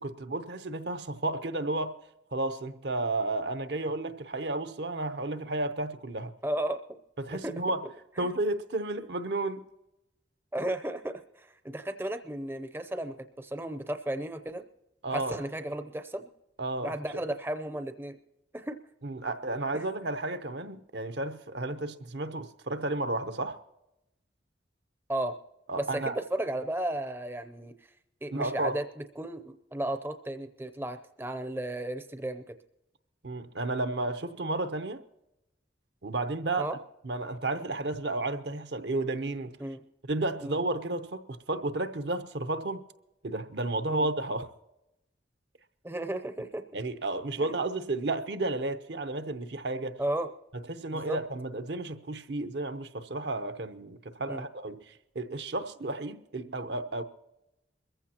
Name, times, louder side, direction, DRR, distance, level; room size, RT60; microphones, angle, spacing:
voice 1, 0.0-2.0 2.3-6.3 7.2-7.8 8.2-9.6 15.0-15.4 16.6-16.9 19.0-23.6 25.7-26.2 28.3-28.7 33.2-35.0 36.0-36.8 37.0-39.6 40.1-42.8 43.2-44.5 46.7-50.0 50.7-57.0, right 2 dB, 70° right, 0.8 m, -32 dB
voice 2, 6.4-7.0 7.3-7.5 8.2-8.3 10.5-14.6 15.1-16.3 16.8-18.2 18.5-18.8 19.7-19.8 25.1-25.3 25.8-27.7 28.2-28.8 29.2-32.6 36.6-36.8 39.6-39.8 40.4-40.6 43.9-44.1 45.8-46.7 47.4-47.5 50.0-50.3 50.9-51.2 54.3-54.4, right 1 dB, 10° right, 0.5 m, -34 dB
22.5 x 15.0 x 2.9 m
head